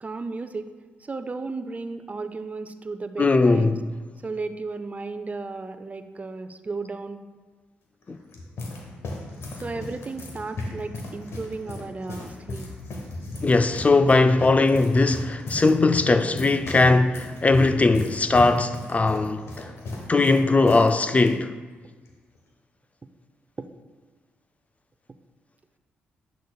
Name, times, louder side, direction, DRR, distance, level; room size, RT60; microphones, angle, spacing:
voice 1, 0.0-0.7 1.0-3.7 4.2-7.2 9.5-12.7, right 3 dB, 30° right, 0.5 m, -34 dB
voice 2, 3.2-3.8 8.1-8.2 13.4-19.7 20.1-21.5, left 3 dB, 30° left, 0.4 m, -20 dB
sound 1, 8.0-20.9 21.2-21.3 22.1-22.4, left 2 dB, 65° left, 1.2 m, -36 dB
10.0 x 6.4 x 2.3 m
hypercardioid pair, 45°, 5 cm